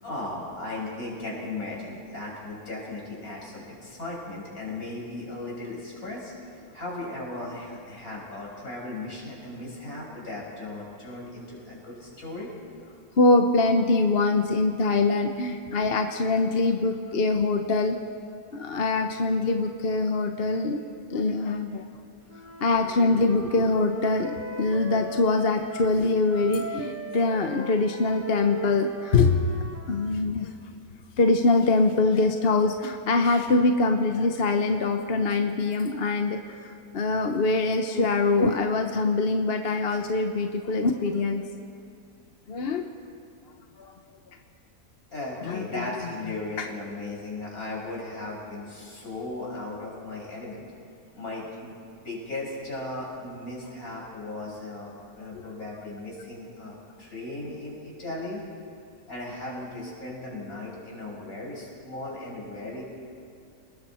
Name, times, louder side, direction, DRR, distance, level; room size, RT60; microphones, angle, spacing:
voice 1, 0.0-6.3 6.7-12.5 35.0-35.1 45.1-50.6 51.2-51.7 52.0-58.4 59.1-62.8, left 2 dB, 65° left, -3 dB, 6.3 m, -37 dB
voice 2, 13.2-18.0 18.5-20.8 21.1-21.8 22.6-30.5 31.2-41.4 42.5-42.9 43.8-43.9 45.4-45.9 46.6-46.7 55.3-55.4, left 3 dB, 45° left, 5 dB, 1.1 m, -24 dB
Wind instrument woodwind instrument, 22.3-26.0 26.3-30.3, right 1 dB, 15° right, 0.7 m, -38 dB
29.5 x 20.0 x 4.4 m, 2.5 s
omnidirectional pair, 1.6 m